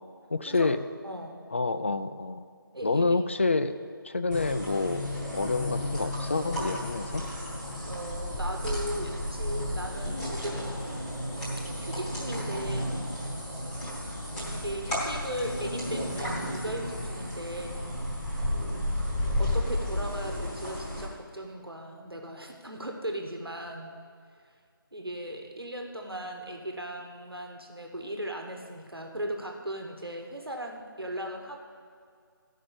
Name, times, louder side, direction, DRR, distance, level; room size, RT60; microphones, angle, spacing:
voice 1, 0.3-0.8 1.5-2.4 2.8-3.8 4.0-5.1 5.3-7.3, left 3 dB, 35° left, 11 dB, 0.4 m, -28 dB
voice 2, 1.0-1.4 2.7-3.2 7.8-10.7 11.8-12.9 14.5-17.8 19.4-24.0 24.9-31.6, right 1 dB, 90° right, 2 dB, 1.3 m, -37 dB
sound 1, 4.3-21.1, left 1 dB, 5° left, 1.0 m, -33 dB
13.5 x 5.4 x 5.6 m, 2.2 s
figure-of-eight pair, 160°, 12 cm